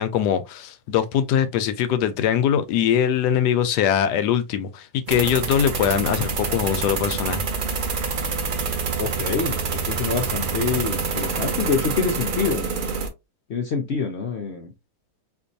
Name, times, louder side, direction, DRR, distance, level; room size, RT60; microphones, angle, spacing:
voice 1, 0.0-7.5, left 9 dB, 85° left, 1.2 m, -22 dB
sound 1, 5.1-13.1, right 4 dB, 75° right, 0.4 m, -26 dB
voice 2, 9.0-12.7 13.5-14.7, left 5 dB, 60° left, 0.7 m, -26 dB
4.5 x 2.5 x 2.6 m
omnidirectional pair, 1.8 m